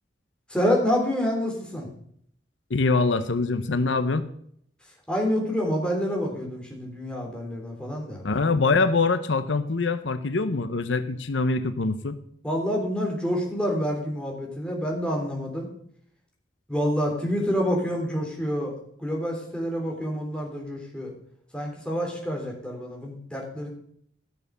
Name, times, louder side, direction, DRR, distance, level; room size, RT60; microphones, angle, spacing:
voice 1, 0.5-1.9 5.1-8.2 12.4-15.7 16.7-18.7 19.0-21.1 21.5-23.7, equal, 5° left, -1 dB, 3.3 m, -27 dB
voice 2, 2.7-4.3 8.2-12.2, left 3 dB, 85° left, 11 dB, 0.8 m, -24 dB
14.0 x 6.8 x 6.8 m, 0.66 s
head